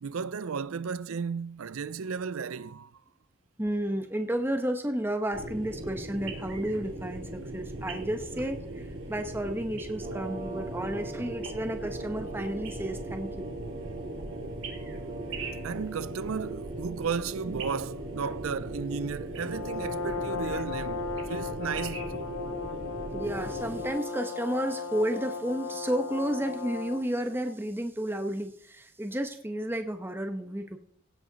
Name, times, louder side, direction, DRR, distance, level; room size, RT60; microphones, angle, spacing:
voice 1, 0.0-3.0 15.6-22.5, right 6 dB, 80° right, 0.5 m, -34 dB
voice 2, 3.6-13.5 18.3-18.4 23.1-30.8, right 1 dB, 10° right, 0.9 m, -32 dB
sound 1, 5.3-23.9, right 1 dB, 65° right, 2.9 m, -39 dB
sound 2, 9.9-25.1, right 2 dB, 40° right, 3.0 m, -44 dB
Brass instrument, 19.4-27.1, left 5 dB, 80° left, 1.9 m, -36 dB
17.0 x 7.9 x 4.0 m
head